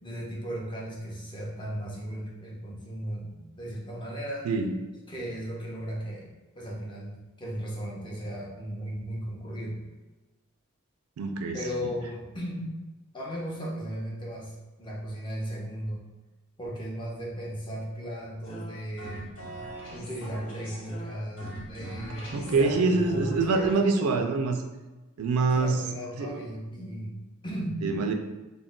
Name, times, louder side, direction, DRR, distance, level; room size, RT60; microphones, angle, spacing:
voice 1, 0.0-4.5 5.1-9.8 11.5-12.7 13.1-16.1 16.6-19.4 19.9-24.3 25.5-27.8, equal, 20° left, -3 dB, 0.6 m, -36 dB
voice 2, 11.2-11.6 22.3-24.6 25.2-25.8 26.2-26.3 27.8-28.1, right 3 dB, 80° right, 5 dB, 0.4 m, -25 dB
sound 1, 18.4-23.7, equal, 80° left, 1.4 m, -41 dB
2.3 x 2.1 x 3.7 m, 1.1 s
head